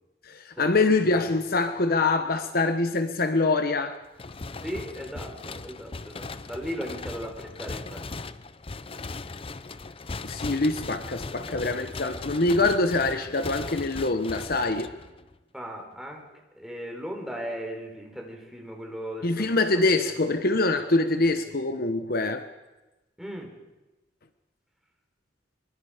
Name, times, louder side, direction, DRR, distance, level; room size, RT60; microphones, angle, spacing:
voice 1, 0.2-4.0 10.2-14.9 19.2-22.5, left 3 dB, 55° left, 8 dB, 1.1 m, -24 dB
sound 1, 4.2-15.4, left 3 dB, 30° left, 0.7 m, -38 dB
voice 2, 4.6-8.0 15.5-16.2 16.5-20.1 21.8-21.9 23.2-23.5, equal, ahead, 1 dB, 4.3 m, -37 dB
24.5 x 24.0 x 5.1 m, 1.1 s
head